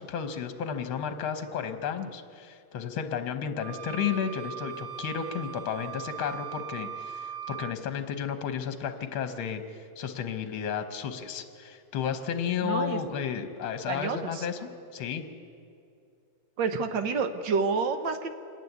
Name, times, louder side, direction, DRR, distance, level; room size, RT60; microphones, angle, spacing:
voice 1, 0.0-15.2, left 7 dB, 75° left, 8 dB, 1.8 m, -33 dB
sound 1, 3.6-7.8, right 10 dB, 85° right, 1.8 m, -40 dB
voice 2, 12.6-13.0 13.9-14.5 16.6-18.3, right 5 dB, 65° right, 8 dB, 1.7 m, -29 dB
26.5 x 11.0 x 9.4 m, 2.6 s
omnidirectional pair, 2.3 m